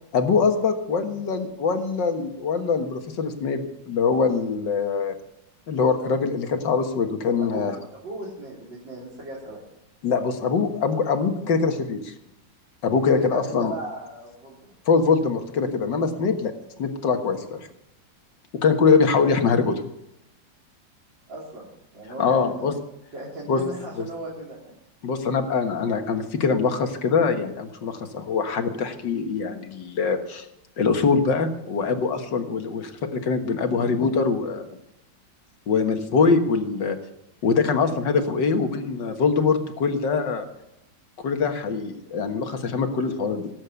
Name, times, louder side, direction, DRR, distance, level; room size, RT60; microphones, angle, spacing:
voice 1, 0.1-5.2 5.7-7.8 10.0-12.1 12.8-13.7 14.9-16.5 16.8-17.6 18.6-19.7 22.2-22.7 23.5-23.6 24.0-24.1 25.0-30.5 30.8-34.6 35.7-37.0 37.4-40.5 41.2-43.5, left 5 dB, 70° left, 6 dB, 2.1 m, -23 dB
voice 2, 7.4-7.7 8.0-9.6 13.1-14.7 21.3-22.7 23.1-24.7, right 1 dB, 80° right, -6 dB, 4.1 m, -37 dB
18.5 x 8.6 x 8.1 m, 0.81 s
omnidirectional pair, 2.0 m